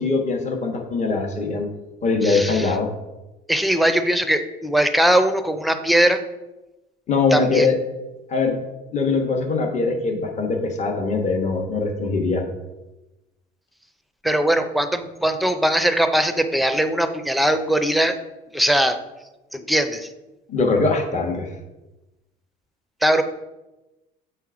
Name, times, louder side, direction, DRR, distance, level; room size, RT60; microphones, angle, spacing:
voice 1, 0.0-1.7 2.0-2.9 7.1-7.8 8.3-8.6 8.9-12.4 20.5-21.5, left 3 dB, 40° left, 3 dB, 1.1 m, -22 dB
voice 2, 2.2-2.7 3.5-6.2 7.3-7.7 14.2-18.1 18.5-19.0 19.5-20.1 23.0-23.2, right 1 dB, ahead, 8 dB, 0.5 m, -20 dB
7.5 x 3.4 x 4.9 m, 1.0 s
cardioid pair, 100°, 19 cm